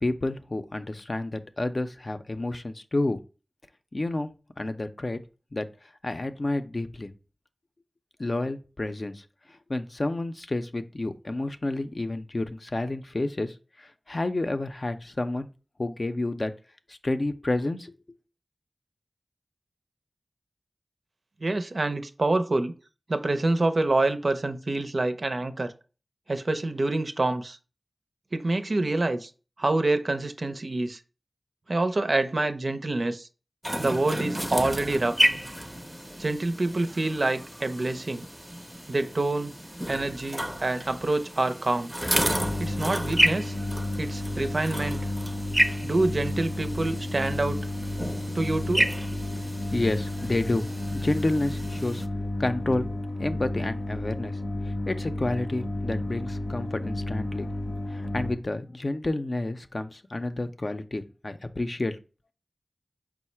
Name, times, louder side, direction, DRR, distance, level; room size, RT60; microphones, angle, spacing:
voice 1, 0.0-3.2 3.9-4.3 4.6-5.2 5.5-5.7 6.0-7.1 8.2-9.2 9.7-15.5 15.8-16.5 16.9-17.9 49.7-52.0 52.4-52.9 53.2-54.4 54.6-57.5 57.9-62.0, left 2 dB, 50° left, 0.4 m, -30 dB
voice 2, 21.4-22.7 23.1-25.7 26.3-27.6 28.3-29.3 29.6-31.0 31.7-33.3 33.8-35.2 36.2-38.3 38.9-39.5 39.9-41.9 42.6-43.5 44.0-45.0 45.8-47.6 48.3-48.9, right 2 dB, 65° right, 0.5 m, -26 dB
sound 1, 33.6-52.1, equal, 10° right, 0.5 m, -31 dB
sound 2, 42.2-58.3, left 1 dB, 90° left, 0.8 m, -32 dB
4.6 x 2.0 x 4.3 m
wide cardioid pair, 45°, 0 cm